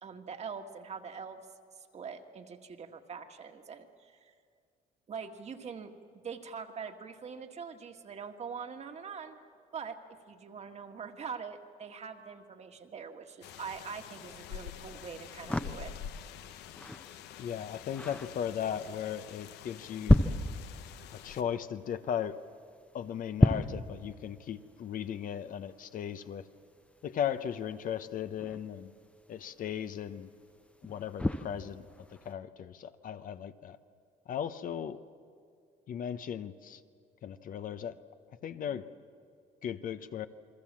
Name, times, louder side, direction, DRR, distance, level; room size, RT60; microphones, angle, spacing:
voice 1, 0.0-1.4 1.9-4.3 5.1-5.9 6.2-9.4 9.7-10.0 10.3-15.9 38.7-38.8, right 6 dB, 40° right, 5 dB, 1.7 m, -43 dB
sound 1, 13.4-21.4, left 9 dB, 85° left, 0.9 m, -47 dB
sound 2, 14.3-32.3, left 1 dB, 5° left, 0.9 m, -35 dB
voice 2, 17.4-20.2 21.1-22.4 22.9-26.5 27.0-28.9 29.3-30.3 30.8-31.9 32.2-33.8 34.3-35.0 35.9-36.8 37.2-38.0 38.4-38.8 39.6-40.3, left 9 dB, 55° left, 11 dB, 0.9 m, -37 dB
28.5 x 21.5 x 7.5 m, 2.3 s
cardioid pair, 110°, 17 cm